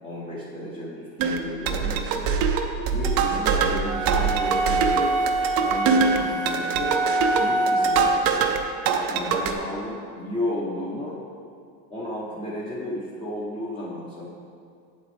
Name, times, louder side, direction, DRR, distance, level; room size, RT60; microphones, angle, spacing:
voice 1, 0.0-2.3 2.9-5.1 5.6-7.0 7.3-8.6 9.1-11.2 11.9-14.3, left 1 dB, 10° left, -6 dB, 0.9 m, -33 dB
sound 1, 1.2-8.6 8.9-9.5, right 6 dB, 50° right, 0.7 m, -24 dB
sound 2, 3.9-8.1, right 2 dB, 20° right, 0.3 m, -25 dB
8.0 x 8.0 x 3.4 m, 2.4 s
cardioid pair, 145°, 46 cm